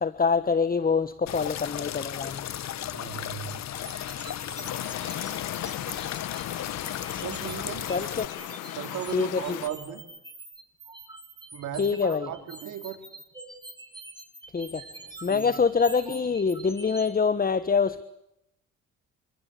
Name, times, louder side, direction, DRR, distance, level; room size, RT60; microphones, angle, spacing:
voice 1, 0.0-2.4 7.9-8.4 9.1-9.6 11.8-12.3 14.5-14.8 15.2-18.0, left 5 dB, 30° left, 1.3 m, -25 dB
sound 1, 1.3-8.3, left 11 dB, 65° left, 1.2 m, -35 dB
voice 2, 2.9-3.6 7.2-7.9 8.8-10.1 11.5-13.0 15.3-15.5, right 10 dB, 80° right, 4.4 m, -36 dB
sound 2, 3.8-17.1, right 2 dB, 15° right, 6.2 m, -45 dB
sound 3, 4.7-9.7, left 13 dB, 90° left, 1.7 m, -37 dB
27.5 x 25.5 x 8.4 m
cardioid pair, 90°, 30 cm